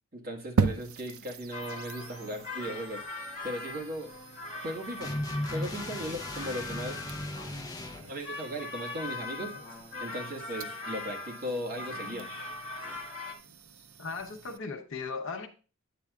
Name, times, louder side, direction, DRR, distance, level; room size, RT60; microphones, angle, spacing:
voice 1, 0.1-3.0 3.4-4.1 4.6-5.2 5.5-7.0 8.0-9.5 10.0-12.3, equal, 40° right, 1.5 m, -37 dB
sound 1, 0.6-14.6, right 5 dB, 70° right, 0.5 m, -39 dB
sound 2, 1.5-13.3, left 2 dB, 40° left, 2.1 m, -41 dB
sound 3, 5.0-8.1, left 1 dB, 15° left, 0.5 m, -36 dB
voice 2, 7.8-8.1 9.4-9.6 12.0-12.3 14.0-15.5, left 4 dB, 55° left, 0.7 m, -39 dB
9.4 x 8.4 x 2.4 m
head